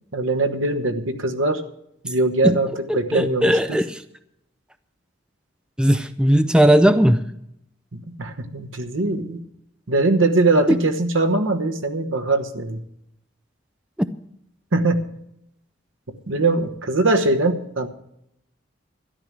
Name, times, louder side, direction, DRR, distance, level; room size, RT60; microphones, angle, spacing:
voice 1, 0.1-1.6 2.0-3.8 7.9-9.4 9.9-12.8 14.7-15.0 16.3-17.9, right 2 dB, 85° right, 1.2 m, -21 dB
voice 2, 2.9-4.0 5.8-7.2 10.7-10.8, equal, 5° right, 0.4 m, -17 dB
13.0 x 10.5 x 6.2 m
head